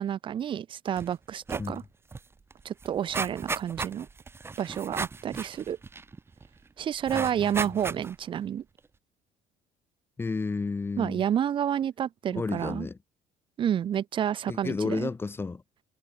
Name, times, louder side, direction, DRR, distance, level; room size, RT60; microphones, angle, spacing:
voice 1, 0.0-1.8 2.6-4.1 4.6-5.8 6.8-8.6 11.0-12.9 13.6-15.1, right 9 dB, 40° right, 1.2 m, -29 dB
sound 1, 1.0-1.1 1.4-1.8 2.1-2.2 2.5-6.5 7.1-8.3 8.8-8.9, right 4 dB, 20° right, 3.5 m, -35 dB
voice 2, 7.1-7.7 10.2-11.2 12.3-13.0 14.5-15.6, left 4 dB, 20° left, 3.6 m, -32 dB
cardioid pair, 140°, 13 cm